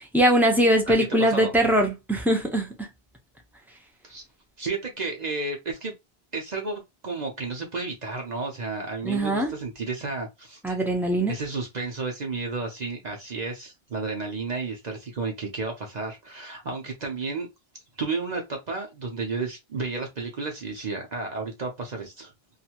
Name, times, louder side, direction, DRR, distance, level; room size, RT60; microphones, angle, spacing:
voice 1, 0.0-2.9 9.0-9.5 10.6-11.3, right 1 dB, ahead, 0.5 m, -22 dB
voice 2, 0.9-1.5 4.0-4.2 4.6-5.9 6.3-10.8 11.3-17.5 18.0-22.3, right 3 dB, 45° right, 0.7 m, -32 dB
2.6 x 2.4 x 2.8 m
omnidirectional pair, 1.1 m